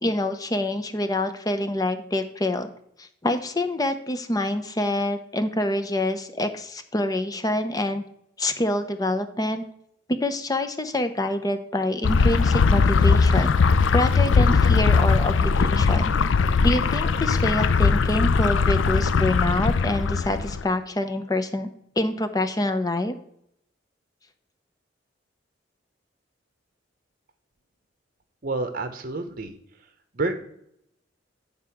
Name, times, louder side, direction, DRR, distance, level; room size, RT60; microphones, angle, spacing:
voice 1, 0.0-2.7 3.0-8.0 8.4-9.6 10.2-13.5 13.9-16.1 16.6-21.7 22.0-23.1, left 1 dB, 20° left, 9 dB, 0.6 m, -26 dB
sound 1, 12.0-20.6, left 4 dB, 85° left, 0.5 m, -20 dB
voice 2, 28.4-29.5 30.1-30.3, right 3 dB, 50° right, 8 dB, 0.8 m, -28 dB
9.5 x 3.6 x 5.8 m, 0.72 s
head